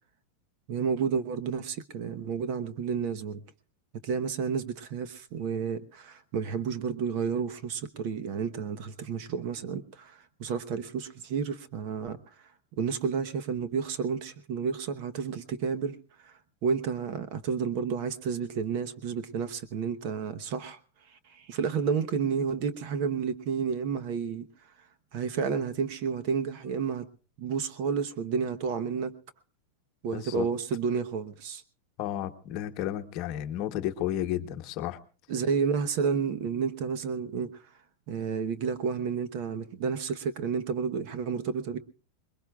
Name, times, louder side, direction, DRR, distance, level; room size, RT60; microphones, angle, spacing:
voice 1, 0.7-3.4 4.0-12.2 12.8-16.0 16.2-16.3 16.6-20.8 21.3-24.5 25.1-27.1 27.4-29.1 30.0-31.6 35.3-37.6 38.1-41.8, right 6 dB, 45° right, 1.0 m, -31 dB
voice 2, 30.1-30.5 32.0-35.0, left 12 dB, 40° left, 1.1 m, -32 dB
25.0 x 21.5 x 2.4 m
supercardioid pair, 165°, 0 cm